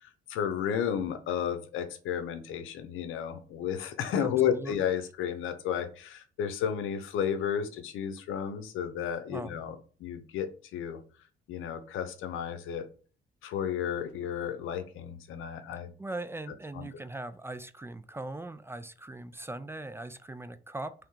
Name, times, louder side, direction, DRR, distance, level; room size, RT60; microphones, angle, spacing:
voice 1, 0.0-11.0 11.5-12.9 13.4-15.9 16.7-16.9, left 8 dB, 85° left, 9 dB, 0.7 m, -32 dB
voice 2, 4.2-4.8 9.3-9.6 16.0-20.9, right 2 dB, 10° right, 12 dB, 0.3 m, -40 dB
3.5 x 3.2 x 4.7 m, 0.39 s
cardioid pair, 90°, 20 cm